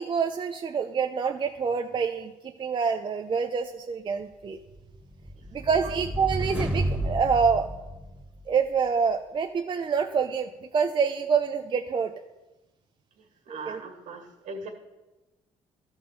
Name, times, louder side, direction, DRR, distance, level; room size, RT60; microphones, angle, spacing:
voice 1, 0.0-2.3 2.6-4.6 5.5-7.7 8.5-12.1 13.5-13.8, right 6 dB, 35° right, 5 dB, 0.6 m, -26 dB
sound 1, 4.8-8.6, right 1 dB, 5° right, 1.9 m, -32 dB
voice 2, 13.2-14.7, right 3 dB, 65° right, 3 dB, 2.3 m, -40 dB
12.5 x 4.4 x 6.8 m, 1.1 s
supercardioid pair, 75°, 14 cm